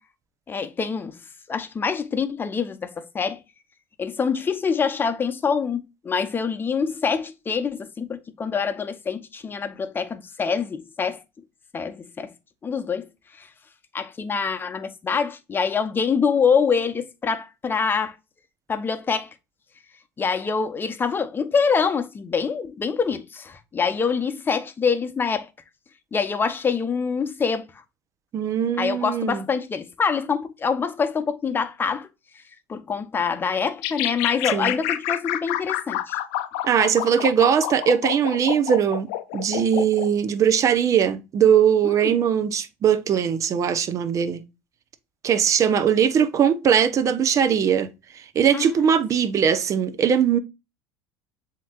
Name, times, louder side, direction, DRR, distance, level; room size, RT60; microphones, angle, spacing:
voice 1, 0.5-1.2 1.5-3.4 4.0-11.2 11.7-12.3 12.6-13.5 13.9-18.2 18.7-19.3 20.2-25.5 26.1-27.8 28.8-32.1 32.3-32.4 32.7-36.2 41.8-42.2 48.5-49.0, left 5 dB, 25° left, 0.9 m, -25 dB
voice 2, 28.3-29.4 34.5-34.7 36.6-44.4 45.2-47.9 48.2-50.4, right 8 dB, 40° right, 0.8 m, -20 dB
sound 1, 33.8-40.1, left 14 dB, 70° left, 0.5 m, -28 dB
7.4 x 3.0 x 2.4 m
hypercardioid pair, 80°, 8 cm